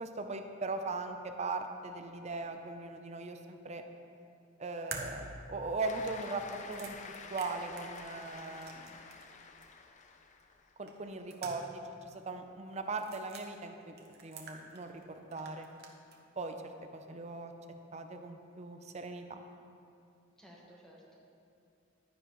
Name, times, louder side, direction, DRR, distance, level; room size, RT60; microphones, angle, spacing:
voice 1, 0.0-3.8 4.6-7.0 7.3-8.9 10.8-13.9 14.2-15.7 16.4-16.6 16.9-17.5 17.9-19.4, right 3 dB, 35° right, 6 dB, 0.5 m, -39 dB
sound 1, 4.9-9.3 9.6-9.7 10.9-11.9 12.1-12.2 12.9-13.5 14.0-15.0 15.3-16.2, right 4 dB, 55° right, 1.0 m, -48 dB
Cheering / Applause, 5.8-10.7, left 4 dB, 35° left, 0.5 m, -49 dB
voice 2, 17.0-17.5 20.4-21.2, equal, 5° left, -4 dB, 1.4 m, -57 dB
11.0 x 9.9 x 3.1 m, 2.5 s
head